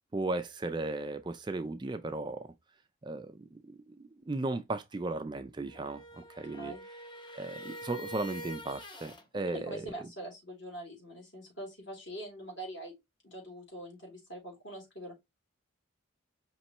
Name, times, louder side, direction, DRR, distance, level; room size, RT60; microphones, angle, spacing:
voice 1, 0.1-2.5 3.0-6.7 7.3-9.8, right 2 dB, 20° right, 0.3 m, -36 dB
sound 1, 5.6-9.3, equal, 20° left, 0.7 m, -45 dB
voice 2, 9.4-12.9 13.2-15.1, right 1 dB, 60° left, 3.0 m, -43 dB
5.4 x 3.0 x 3.0 m
head